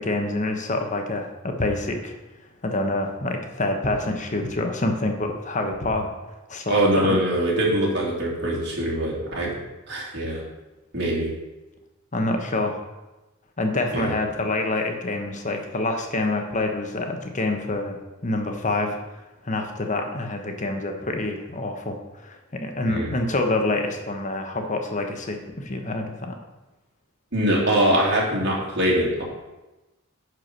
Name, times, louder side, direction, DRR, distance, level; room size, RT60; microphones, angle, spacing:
voice 1, 0.0-2.1 2.6-6.1 6.5-7.1 12.1-12.8 13.6-18.0 18.2-19.0 19.4-22.0 22.2-26.3, left 2 dB, 35° left, 4 dB, 1.2 m, -26 dB
voice 2, 6.7-9.6 9.9-10.4 10.9-11.3 13.9-14.1 22.9-23.2 27.3-29.2, right 1 dB, 55° right, -3 dB, 2.8 m, -23 dB
10.5 x 4.8 x 6.1 m, 1.1 s
head